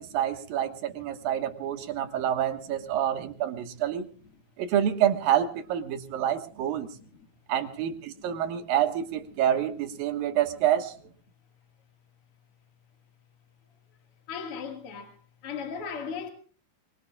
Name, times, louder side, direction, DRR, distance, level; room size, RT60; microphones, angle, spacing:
voice 1, 0.0-4.1 4.6-6.9 7.5-10.9, right 10 dB, 80° right, 3.3 m, -27 dB
voice 2, 6.9-7.3 8.1-8.3 10.1-10.3 10.6-10.7 14.3-15.2 15.4-16.3, left 6 dB, 45° left, 2.5 m, -38 dB
24.5 x 23.5 x 2.4 m
omnidirectional pair, 4.0 m